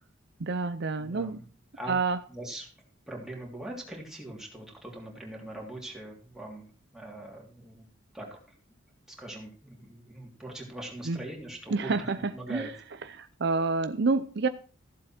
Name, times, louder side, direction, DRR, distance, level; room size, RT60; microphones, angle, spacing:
voice 1, 0.4-1.4 1.9-2.2 11.1-11.2 11.7-12.7 13.2-14.5, right 4 dB, 55° right, 11 dB, 0.6 m, -28 dB
voice 2, 1.0-1.4 1.7-2.0 2.3-2.7 3.1-6.7 6.9-7.9 8.1-8.4 9.1-12.7, right 1 dB, ahead, -1 dB, 3.0 m, -42 dB
14.5 x 7.7 x 4.4 m, 0.41 s
head